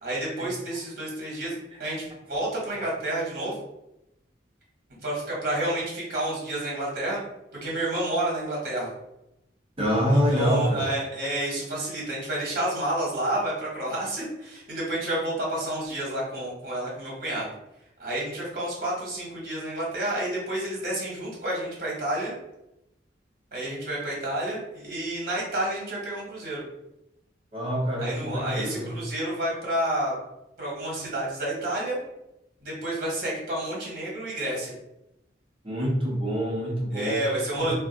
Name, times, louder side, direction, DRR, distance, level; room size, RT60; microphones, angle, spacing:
voice 1, 0.0-3.6 4.9-7.2 7.6-8.9 10.1-17.5 18.0-22.3 23.5-26.6 28.0-30.1 30.6-32.0 32.6-34.7 36.9-37.7, right 1 dB, 50° right, -5 dB, 1.1 m, -30 dB
voice 2, 9.8-10.9 27.5-28.9 35.6-37.2 37.6-37.7, equal, 30° right, -3 dB, 0.7 m, -26 dB
2.4 x 2.3 x 3.7 m, 0.87 s
head